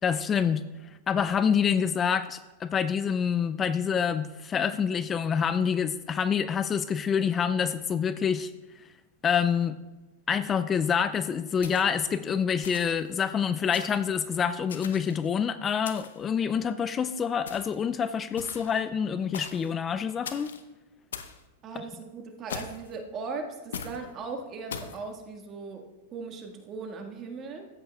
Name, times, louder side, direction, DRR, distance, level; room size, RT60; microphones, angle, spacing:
voice 1, 0.0-0.6 1.1-8.5 9.2-9.8 10.3-20.5, left 7 dB, 25° left, 12 dB, 0.3 m, -27 dB
sound 1, 11.6-12.1 12.6-13.1 13.7-14.1 14.7-15.3 15.8-16.3 17.5-17.8 18.4-18.8 19.3-19.7 20.2-20.6 21.1-21.4 22.5-22.9 23.7-24.0 24.7-25.0, left 6 dB, 80° left, 0.7 m, -40 dB
voice 2, 21.6-25.9 26.1-27.7, right 4 dB, 35° right, 3 dB, 1.6 m, -38 dB
13.5 x 8.9 x 2.3 m, 1.1 s
hypercardioid pair, 105°, 0 cm